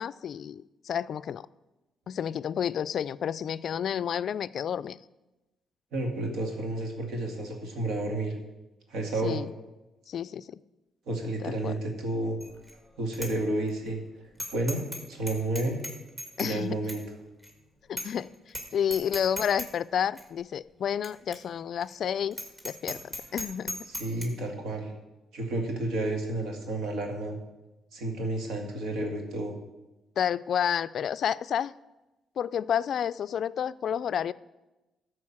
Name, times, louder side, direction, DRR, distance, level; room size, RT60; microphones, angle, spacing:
voice 1, 0.0-1.4 2.1-5.0 9.2-9.5 10.1-10.6 11.4-11.7 16.4-16.9 17.9-18.3 18.7-22.4 22.6-23.8 30.2-31.7 32.4-34.3, left 8 dB, 60° left, 17 dB, 0.3 m, -30 dB
voice 2, 5.9-8.4 8.9-9.4 11.1-12.4 13.0-14.0 14.5-15.8 16.4-17.0 23.9-24.9 25.3-27.4 27.9-29.5, right 2 dB, 80° right, 3 dB, 2.1 m, -31 dB
Bicycle bell, 12.4-12.7 13.1-13.3 13.7-13.8 14.4-15.0 15.3-16.6 16.9-17.0 17.4-17.5 18.0-18.2 18.5-18.7 18.9-19.7 20.2-20.3 21.0-21.1 21.3-21.4 21.8-21.9 22.3-24.3, equal, 15° right, 2.1 m, -36 dB
13.0 x 4.7 x 7.3 m, 1.0 s
cardioid pair, 90°, 0 cm